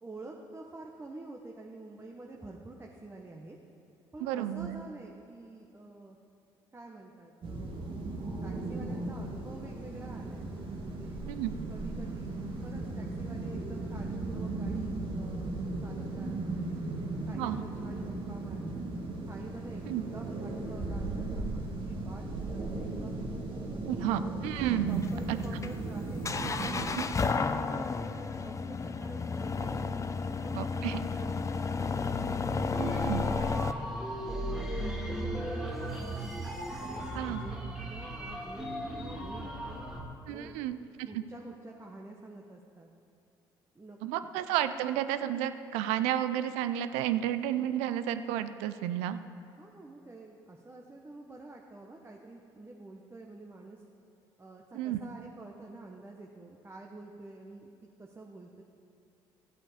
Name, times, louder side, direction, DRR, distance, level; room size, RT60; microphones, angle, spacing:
voice 1, 0.0-3.6 4.1-6.2 6.7-8.1 8.4-10.5 10.8-11.2 11.7-16.9 17.3-18.9 19.3-23.2 23.7-24.6 24.8-32.0 32.6-33.9 34.2-36.2 36.8-39.9 40.3-40.8 41.1-42.9 43.7-44.3 49.6-53.8 54.4-57.7 58.0-58.6, right 2 dB, 20° right, 0 dB, 1.1 m, -48 dB
voice 2, 4.2-4.8 11.3-11.5 17.4-17.6 19.9-20.0 23.9-25.4 27.0-27.1 30.5-31.0 32.8-33.2 37.1-37.4 40.3-41.2 44.0-49.2 54.7-55.0, right 11 dB, 80° right, 12 dB, 0.5 m, -32 dB
sound 1, 7.4-26.9, right 2 dB, 55° right, 1.9 m, -36 dB
sound 2, 24.6-33.7, left 4 dB, 30° left, 0.6 m, -32 dB
sound 3, 32.7-40.0, right 1 dB, 5° right, 2.1 m, -37 dB
13.5 x 8.3 x 5.0 m, 2.6 s
hypercardioid pair, 60°, 11 cm